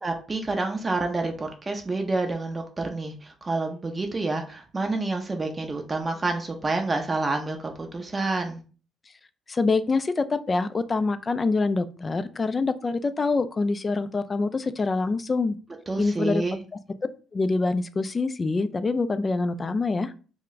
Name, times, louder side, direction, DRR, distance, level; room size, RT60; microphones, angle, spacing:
voice 1, 0.0-8.6 15.9-16.6, right 3 dB, 30° right, 0.5 m, -28 dB
voice 2, 9.5-15.6 16.0-16.4 17.3-20.1, left 3 dB, 35° left, 0.3 m, -25 dB
2.3 x 2.1 x 3.9 m
hypercardioid pair, 50°, 0 cm